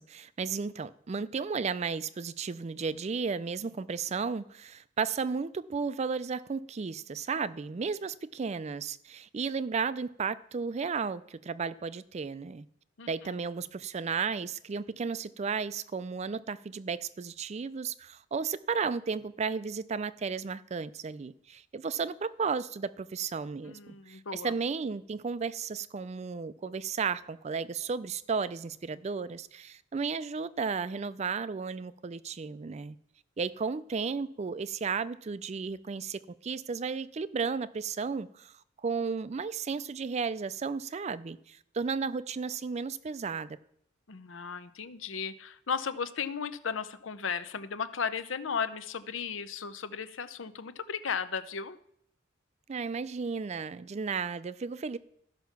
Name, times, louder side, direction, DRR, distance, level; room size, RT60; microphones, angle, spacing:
voice 1, 0.0-12.7 13.1-33.0 33.4-38.5 38.8-43.6 52.7-55.0, right 5 dB, 35° right, 16 dB, 0.4 m, -34 dB
voice 2, 13.0-13.3 23.6-24.5 44.1-51.8, left 6 dB, 75° left, 13 dB, 0.7 m, -35 dB
14.0 x 5.7 x 5.8 m, 0.69 s
head